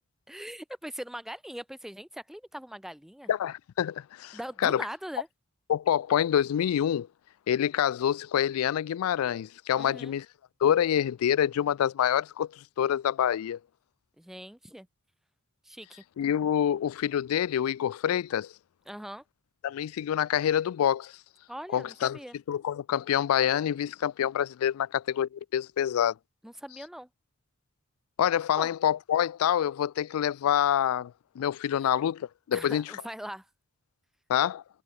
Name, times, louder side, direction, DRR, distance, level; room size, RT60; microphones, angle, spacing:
voice 1, 0.3-3.3 4.3-5.3 9.8-10.2 14.2-14.9 15.6-16.0 18.9-19.2 21.5-22.4 26.4-27.1 28.6-28.7 31.8-31.9 32.5-33.5, equal, ahead, 0.3 m, -41 dB
voice 2, 3.3-4.8 5.7-7.1 7.5-10.3 10.6-13.6 16.2-18.5 19.6-21.1 21.7-22.2 22.5-26.1 28.2-32.9 34.3-34.6, left 9 dB, 75° left, 0.3 m, -27 dB
head